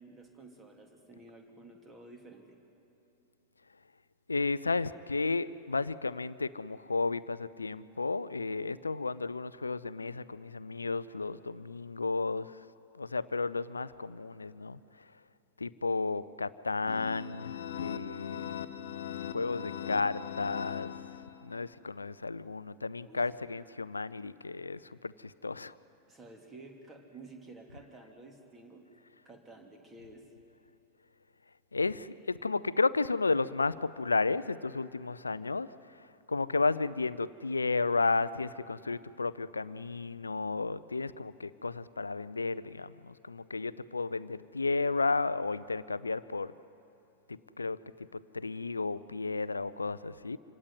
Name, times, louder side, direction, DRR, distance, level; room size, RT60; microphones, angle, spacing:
voice 1, 0.0-2.6 23.1-23.3 26.1-28.9 29.2-30.3, right 2 dB, 15° right, 3 dB, 2.9 m, -52 dB
voice 2, 4.3-12.6 13.0-14.8 15.6-18.5 19.3-20.9 21.4-25.7 31.7-35.7 36.3-46.5 47.3-50.4, left 3 dB, 80° left, 17 dB, 0.5 m, -33 dB
sound 1, 16.9-21.6, left 10 dB, 60° left, 0.9 m, -40 dB
26.5 x 17.0 x 9.6 m, 2.8 s
figure-of-eight pair, 90°, 0 cm